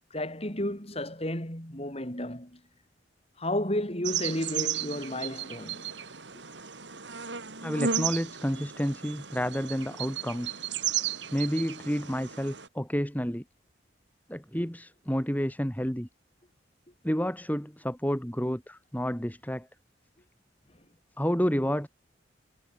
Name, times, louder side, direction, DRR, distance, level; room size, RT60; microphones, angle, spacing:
voice 1, 0.1-2.6 3.4-5.9, left 1 dB, 35° left, 7.3 m, -32 dB
sound 1, 4.0-12.7, right 8 dB, 80° right, 4.1 m, -34 dB
voice 2, 7.6-10.6 11.3-13.4 14.3-16.1 17.0-19.7 21.2-21.9, equal, 10° left, 4.6 m, -30 dB
head